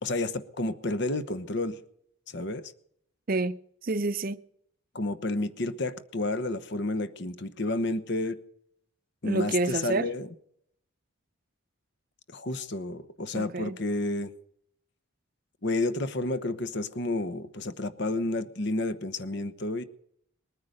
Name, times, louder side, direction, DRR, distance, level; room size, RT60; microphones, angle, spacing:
voice 1, 0.0-1.8 2.3-2.7 4.9-8.4 9.2-10.3 12.3-14.3 15.6-19.8, left 2 dB, 55° left, 1.0 m, -30 dB
voice 2, 3.3-4.4 9.2-10.1 13.3-13.8, right 2 dB, 40° right, 0.6 m, -29 dB
21.0 x 9.6 x 6.6 m
head